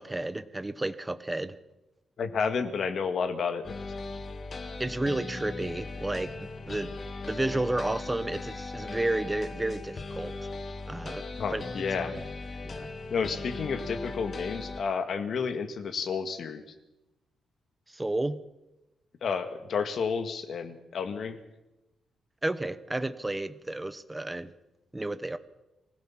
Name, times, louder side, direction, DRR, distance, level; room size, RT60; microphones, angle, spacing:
voice 1, 0.0-1.6 4.8-6.9 7.2-10.3 10.9-11.2 11.5-11.6 12.1-12.2 12.6-12.9 17.9-18.4 22.4-24.5 24.9-25.4, right 2 dB, 10° right, 13 dB, 0.9 m, -31 dB
voice 2, 2.2-3.8 11.4-12.1 13.1-16.6 19.2-21.4, left 5 dB, 50° left, 8 dB, 2.1 m, -31 dB
sound 1, 3.6-14.8, left 3 dB, 30° left, 1.8 m, -38 dB
24.0 x 16.0 x 7.4 m, 0.98 s
wide cardioid pair, 165°, 0 cm